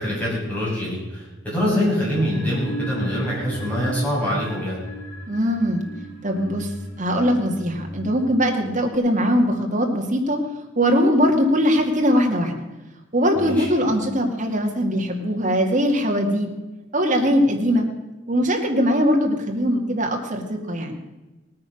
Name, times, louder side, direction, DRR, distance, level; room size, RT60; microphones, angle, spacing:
voice 1, 0.0-4.8 13.4-13.7, left 1 dB, 10° left, -7 dB, 7.0 m, -24 dB
sound 1, 2.1-8.9, right 1 dB, 60° left, 2.9 m, -36 dB
voice 2, 5.3-5.8 6.2-6.7 7.0-10.4 10.8-12.6 13.1-16.5 16.9-17.9 18.3-21.0, equal, 40° right, 1 dB, 2.1 m, -21 dB
18.0 x 9.5 x 6.4 m, 1.1 s
head